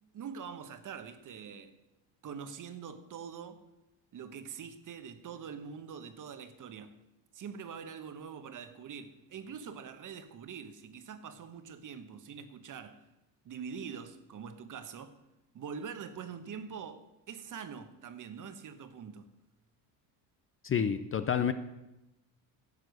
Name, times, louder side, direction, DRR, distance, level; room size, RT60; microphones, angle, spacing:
voice 1, 0.1-1.8 2.2-3.6 4.1-7.0 7.3-13.1 13.4-15.2 15.5-19.3, right 6 dB, 40° right, 1.2 m, -44 dB
voice 2, 20.6-21.5, left 7 dB, 25° left, 0.7 m, -29 dB
12.0 x 7.5 x 6.5 m
supercardioid pair, 90°, 48 cm